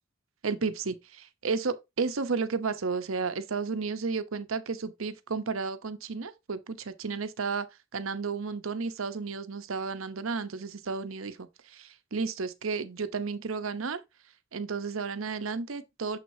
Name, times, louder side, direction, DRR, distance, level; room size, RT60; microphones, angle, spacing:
voice 1, 0.4-7.7 7.9-14.0 14.5-16.2, right 4 dB, 80° right, 0.8 m, -32 dB
6.6 x 6.2 x 2.7 m
head